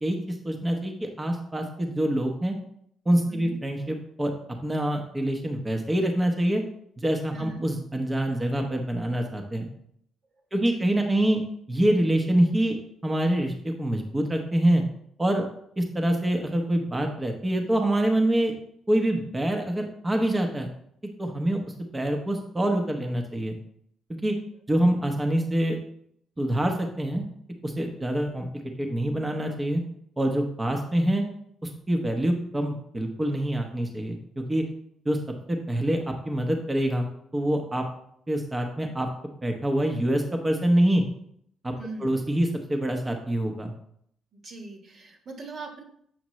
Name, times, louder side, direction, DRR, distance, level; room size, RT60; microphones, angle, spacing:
voice 1, 0.0-2.5 3.1-4.3 4.6-6.6 7.0-9.7 10.5-11.4 11.7-12.8 13.0-14.8 15.2-15.4 15.8-18.5 18.9-20.7 21.0-23.5 24.1-24.4 24.7-25.8 26.4-27.2 27.6-28.5 28.8-29.8 30.2-31.2 31.6-34.6 35.0-35.2 35.5-37.1 37.3-37.8 38.3-39.1 39.4-41.0 41.6-41.7 42.0-43.7, right 1 dB, 20° right, 3 dB, 0.9 m, -25 dB
voice 2, 3.3-3.6 7.3-7.7 10.6-10.9 41.8-42.2 44.3-45.8, right 3 dB, 50° right, 3 dB, 1.4 m, -40 dB
7.5 x 5.1 x 3.1 m, 0.69 s
cardioid pair, 90°, 0 cm